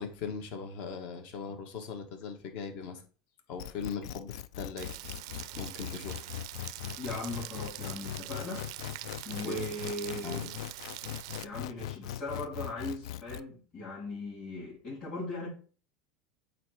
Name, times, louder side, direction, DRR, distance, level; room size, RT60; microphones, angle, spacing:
voice 1, 0.0-3.0 3.5-5.0 5.6-6.3 9.4-9.6 10.2-10.5, left 6 dB, 55° left, 1.3 m, -39 dB
sound 1, 3.6-13.4, left 12 dB, 90° left, 0.3 m, -40 dB
Rain, 4.8-11.4, right 17 dB, 75° right, 0.3 m, -44 dB
voice 2, 7.0-8.7 9.2-10.5 11.4-15.5, left 1 dB, 30° left, 3.2 m, -38 dB
8.3 x 2.8 x 4.6 m
supercardioid pair, 140°, 3 cm